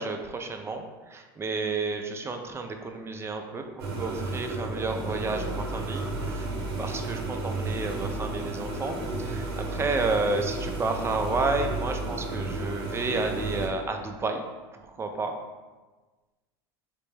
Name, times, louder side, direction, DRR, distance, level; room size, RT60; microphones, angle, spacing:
voice 1, 0.0-6.5 6.8-14.4 14.7-15.3, right 3 dB, 20° right, 5 dB, 0.4 m, -31 dB
sound 1, 3.8-13.7, right 2 dB, 75° right, 0.7 m, -32 dB
4.2 x 2.1 x 3.2 m, 1.3 s
hypercardioid pair, 85°, 13 cm